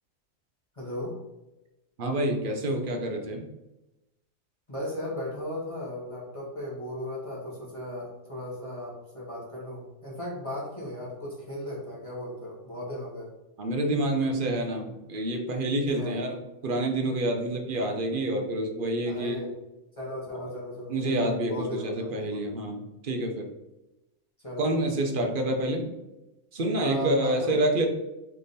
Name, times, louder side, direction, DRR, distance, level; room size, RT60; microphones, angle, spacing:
voice 1, 0.7-1.2 4.7-13.3 15.9-16.2 19.0-19.5 20.0-22.5 24.4-24.6 26.8-27.6, left 1 dB, 25° left, -7 dB, 1.2 m, -36 dB
voice 2, 2.0-3.4 13.6-19.4 20.3-20.5 20.9-23.5 24.6-25.9 26.5-27.9, right 1 dB, 50° right, 3 dB, 0.7 m, -28 dB
3.4 x 3.3 x 4.0 m, 0.98 s
omnidirectional pair, 1.4 m